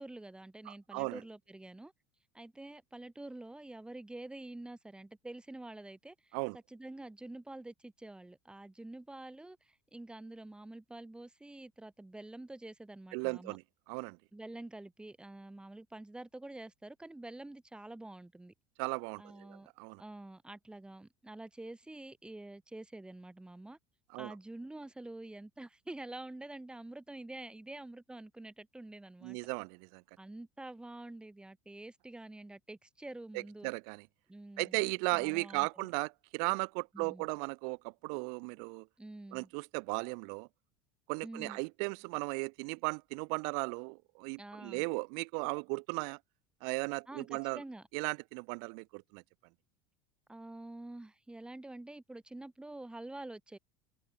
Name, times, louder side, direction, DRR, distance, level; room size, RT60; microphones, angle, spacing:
voice 1, 0.0-1.9 2.3-13.6 14.3-18.5 19.2-19.7 20.0-23.8 24.2-29.4 30.2-33.7 34.3-34.8 35.1-35.9 36.9-37.3 39.0-39.5 41.2-41.6 44.4-44.8 47.1-47.8 50.3-53.6, right 2 dB, 10° right, 7.4 m, -47 dB
voice 2, 0.7-1.2 6.3-6.6 13.1-13.6 13.9-14.2 18.8-20.0 24.1-24.3 29.2-30.0 33.3-34.1 34.6-38.9 39.3-40.5 41.1-46.2 46.6-47.6 47.9-49.2, right 40 dB or more, 65° right, 7.9 m, -36 dB
hypercardioid pair, 75°, 11 cm